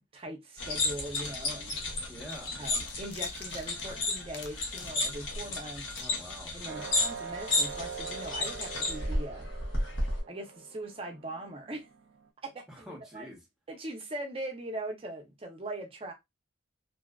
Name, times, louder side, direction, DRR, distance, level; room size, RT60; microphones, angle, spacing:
voice 1, 0.0-2.0 2.6-5.9 6.5-9.5 10.3-11.9 12.4-13.3 13.7-16.1, right 1 dB, 30° right, 0.6 m, -41 dB
sound 1, 0.6-10.2, left 2 dB, 85° left, 1.0 m, -33 dB
voice 2, 2.1-2.6 6.0-7.0 12.7-13.4, equal, 5° right, 0.9 m, -47 dB
sound 2, 2.3-5.7 6.0-6.1, left 5 dB, 60° left, 0.5 m, -49 dB
sound 3, 6.7-12.3, right 6 dB, 90° right, 0.4 m, -44 dB
2.6 x 2.3 x 2.3 m
head